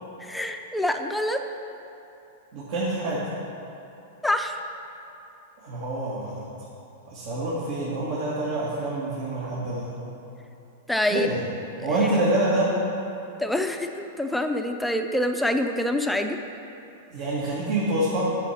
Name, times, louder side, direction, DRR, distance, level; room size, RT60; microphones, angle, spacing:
voice 1, 0.3-1.4 4.2-4.5 10.9-11.3 11.8-11.9 13.4-16.4, left 1 dB, 5° left, 5 dB, 0.6 m, -26 dB
voice 2, 2.5-3.2 5.6-6.4 7.1-9.9 11.1-11.4 11.8-12.7 17.1-18.2, right 1 dB, 60° right, -7 dB, 2.0 m, -26 dB
8.1 x 6.4 x 5.8 m, 2.9 s
hypercardioid pair, 115°, 0 cm